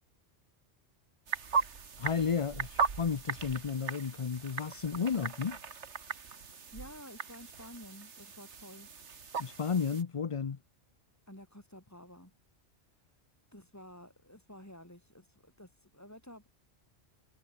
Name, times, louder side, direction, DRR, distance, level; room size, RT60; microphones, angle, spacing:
sound 1, 1.3-10.0, right 5 dB, 90° right, 1.9 m, -38 dB
voice 1, 2.0-5.6 9.4-10.6, left 6 dB, 35° left, 0.6 m, -33 dB
voice 2, 6.7-8.9 11.3-12.3 13.5-16.5, left 1 dB, 15° left, 4.3 m, -51 dB
omnidirectional pair, 1.1 m